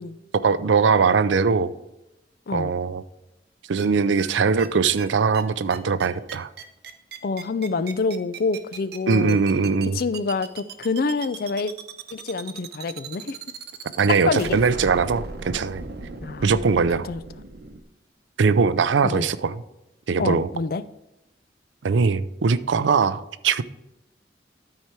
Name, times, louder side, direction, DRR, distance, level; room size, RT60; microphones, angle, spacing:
voice 1, 0.3-1.7 2.5-3.0 3.7-6.5 9.1-10.0 14.0-15.8 16.4-17.1 18.4-19.5 20.1-20.5 21.8-23.6, right 5 dB, 90° right, 0.5 m, -21 dB
sound 1, 3.8-3.9 4.2-4.3 4.6-4.7 5.0-5.1 5.3-5.4 5.7-17.8, right 4 dB, 60° right, 0.8 m, -37 dB
voice 2, 7.2-9.4 9.9-11.7 12.1-13.4 14.1-14.6 16.2-16.5 17.0-17.2 19.0-19.3 20.2-20.8, left 4 dB, 55° left, 0.4 m, -26 dB
12.5 x 4.8 x 4.4 m
head